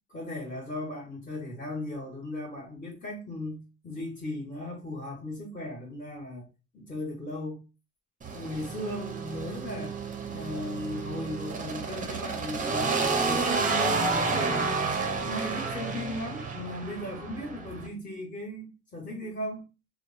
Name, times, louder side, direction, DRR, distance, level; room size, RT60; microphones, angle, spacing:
voice 1, 0.1-6.5 6.7-7.6 8.3-10.0 10.3-14.8 15.2-19.7, left 1 dB, 30° left, 0.9 m, -37 dB
sound 1, 8.2-17.9, right 4 dB, 25° right, 0.5 m, -30 dB
2.9 x 2.0 x 2.4 m
cardioid pair, 90°, 30 cm